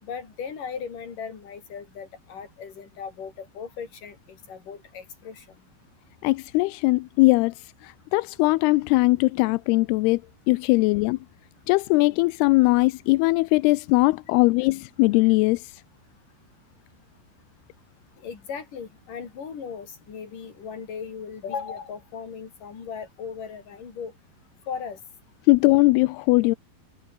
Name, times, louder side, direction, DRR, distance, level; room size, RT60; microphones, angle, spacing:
voice 1, 0.0-5.5 18.2-24.1 24.7-25.0, left 6 dB, 50° left, 5.4 m, -37 dB
voice 2, 6.2-10.2 10.5-11.2 11.7-15.8 25.5-26.6, left 22 dB, 80° left, 2.4 m, -20 dB
omnidirectional pair, 4.9 m